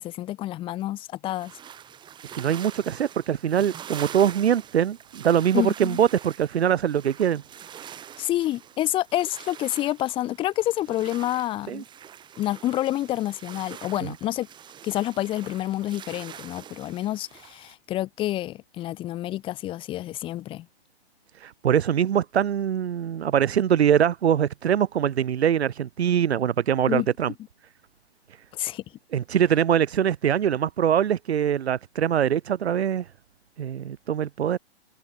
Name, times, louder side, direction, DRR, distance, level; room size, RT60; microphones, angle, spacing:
voice 1, 0.0-1.5 5.5-6.0 8.2-11.8 12.4-14.5 14.8-20.7 26.9-27.1 28.5-28.8, left 14 dB, 15° left, 1.3 m, -28 dB
sound 1, 1.3-17.7, right 9 dB, 15° right, 2.9 m, -44 dB
voice 2, 2.3-7.4 11.7-11.8 14.0-14.1 21.4-27.3 29.1-33.1 33.6-34.6, right 9 dB, 85° right, 0.6 m, -23 dB
hypercardioid pair, 140°, 31 cm